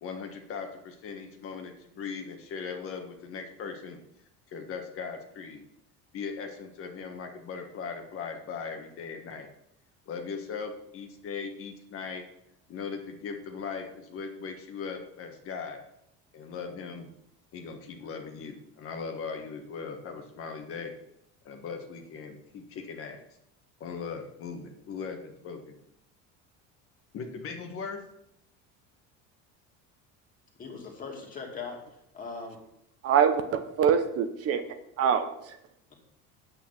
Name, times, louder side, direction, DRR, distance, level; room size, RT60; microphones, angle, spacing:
voice 1, 0.0-4.0 4.5-5.6 6.1-9.5 10.1-12.2 12.7-15.8 16.3-17.1 17.5-20.9 21.4-23.2 23.8-25.7 27.1-28.0, left 5 dB, 40° left, 4 dB, 1.6 m, -39 dB
voice 2, 30.6-31.8 32.1-32.6, left 4 dB, 25° left, 1 dB, 2.5 m, -39 dB
voice 3, 33.0-35.6, right 7 dB, 45° right, 8 dB, 1.1 m, -25 dB
8.9 x 8.6 x 5.9 m, 0.77 s
cardioid pair, 160°, 33 cm